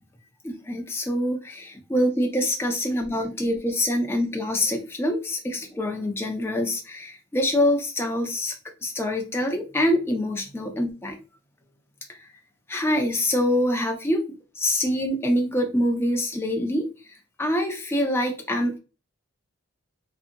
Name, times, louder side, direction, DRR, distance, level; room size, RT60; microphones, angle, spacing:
voice 1, 0.4-8.5 8.8-11.2 12.7-14.3 14.6-16.9 17.4-18.8, left 1 dB, 10° left, 2 dB, 0.4 m, -25 dB
2.7 x 2.5 x 2.5 m, 0.32 s
head